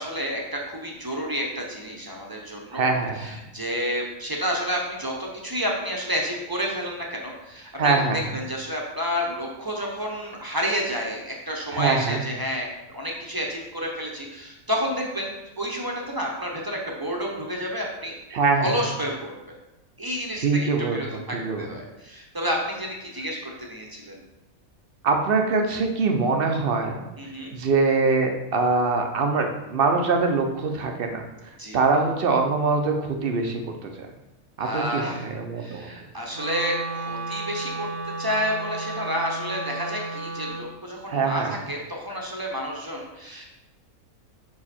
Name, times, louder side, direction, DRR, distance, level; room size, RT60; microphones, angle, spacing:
voice 1, 0.0-2.9 3.1-18.1 18.6-19.4 20.0-24.2 27.2-27.6 31.6-31.8 34.6-35.3 35.6-37.9 38.2-43.4, equal, 20° right, -1 dB, 0.7 m, -30 dB
voice 2, 2.7-3.4 7.8-8.4 11.7-12.2 18.3-18.8 20.4-21.8 25.0-26.9 27.5-31.2 31.7-34.1 34.6-35.9 41.1-41.5, right 4 dB, 50° right, 4 dB, 0.8 m, -23 dB
Wind instrument woodwind instrument, 36.3-40.7, right 3 dB, 80° right, 1.2 m, -33 dB
5.6 x 4.8 x 4.3 m, 0.97 s
omnidirectional pair, 1.5 m